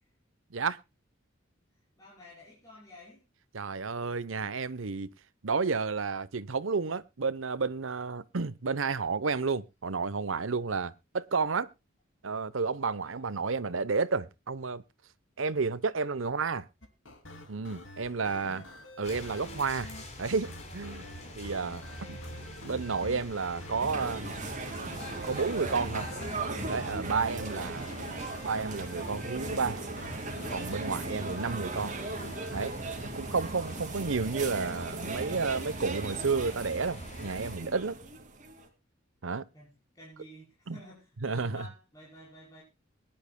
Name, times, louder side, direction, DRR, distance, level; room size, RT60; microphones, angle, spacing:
voice 1, 2.0-3.3 13.0-13.5 18.2-18.7 21.0-21.5 39.5-42.6, equal, 20° left, 5.6 m, -52 dB
voice 2, 3.5-5.1 5.4-11.7 12.2-14.8 15.4-16.7 17.5-18.6 19.0-19.9 20.2-21.1 21.3-22.2 22.6-24.3 25.2-26.1 26.7-28.0 28.4-29.8 30.5-32.0 32.5-32.7 33.1-38.0 39.2-39.5 40.7-40.8 41.2-41.7, right 4 dB, 80° right, 0.8 m, -31 dB
sound 1, 16.8-32.7, left 1 dB, 70° left, 2.8 m, -48 dB
sound 2, 19.0-37.6, equal, 35° left, 4.2 m, -44 dB
sound 3, 23.8-38.7, right 3 dB, 40° right, 2.4 m, -38 dB
22.5 x 10.5 x 2.2 m
head